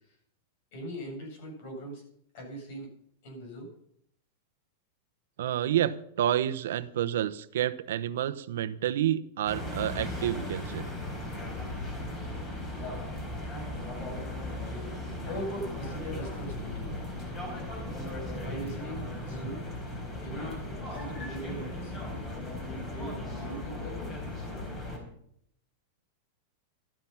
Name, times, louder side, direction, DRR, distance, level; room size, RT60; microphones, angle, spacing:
voice 1, 0.7-2.0 2.3-3.0 3.2-3.7 15.2-16.9 18.4-19.6 20.2-22.0 22.9-24.0, right 1 dB, 55° left, 2 dB, 7.5 m, -40 dB
voice 2, 5.4-10.8, right 11 dB, 80° right, 11 dB, 0.9 m, -29 dB
sound 1, 9.4-25.0, left 1 dB, 20° left, 4.5 m, -37 dB
14.0 x 12.0 x 5.8 m, 0.68 s
supercardioid pair, 160°, 0 cm